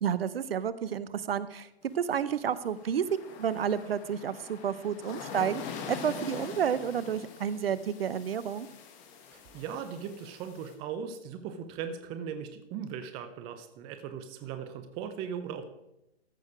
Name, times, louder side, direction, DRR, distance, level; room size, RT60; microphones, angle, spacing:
voice 1, 0.0-1.7 1.9-3.0 3.4-8.7, right 8 dB, 65° right, 16 dB, 0.7 m, -30 dB
sound 1, 1.9-10.7, left 6 dB, 25° left, 1.3 m, -44 dB
voice 2, 9.3-15.6, right 7 dB, 15° right, 9 dB, 0.6 m, -38 dB
14.0 x 6.4 x 4.9 m, 0.86 s
hypercardioid pair, 135°, 32 cm